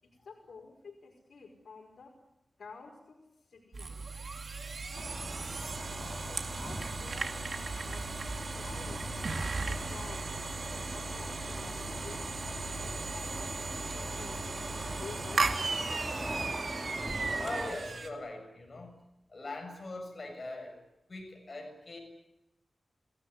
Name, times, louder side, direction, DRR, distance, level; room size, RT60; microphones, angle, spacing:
voice 1, 0.0-2.1 2.6-4.0 4.8-9.2 9.6-10.3 10.9-13.3 13.9-15.6, left 4 dB, 80° left, -1 dB, 5.3 m, -51 dB
sound 1, 3.7-18.1, right 3 dB, 55° right, 2.9 m, -37 dB
sound 2, 4.9-17.7, right 1 dB, 15° right, 3.6 m, -41 dB
voice 2, 17.4-19.0 19.3-20.8 21.1-22.0, left 2 dB, 45° left, 2 dB, 7.1 m, -41 dB
28.0 x 18.5 x 9.8 m, 0.93 s
wide cardioid pair, 100°, 0 cm